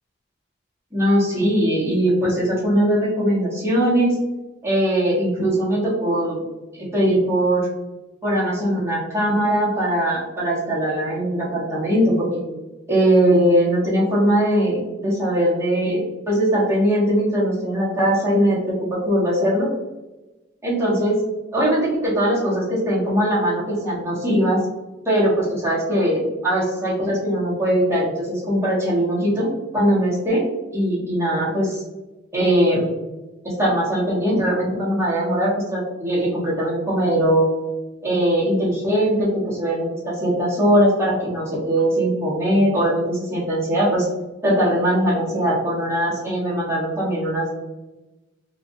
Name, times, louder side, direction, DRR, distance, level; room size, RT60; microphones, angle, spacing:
voice 1, 0.9-4.2 4.6-6.4 6.7-7.7 8.2-12.4 12.9-19.7 20.6-21.2 21.5-24.6 25.0-29.5 29.7-30.4 30.7-31.8 32.3-32.9 33.4-37.5 38.0-44.1 44.4-47.5, right 1 dB, 15° right, -7 dB, 1.3 m, -20 dB
4.4 x 2.5 x 2.6 m, 1.1 s
head